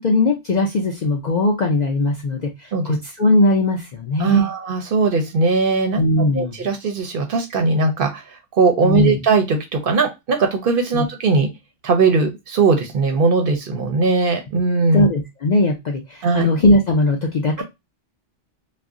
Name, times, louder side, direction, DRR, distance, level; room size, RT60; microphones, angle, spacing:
voice 1, 0.0-4.5 6.0-6.5 8.8-9.2 10.9-11.1 14.9-17.6, left 2 dB, 55° left, 1 dB, 0.5 m, -19 dB
voice 2, 4.2-11.5 11.8-15.1 16.2-16.5 17.6-17.7, right 4 dB, 60° right, 4 dB, 0.7 m, -19 dB
2.4 x 2.1 x 3.5 m, 0.21 s
omnidirectional pair, 1.2 m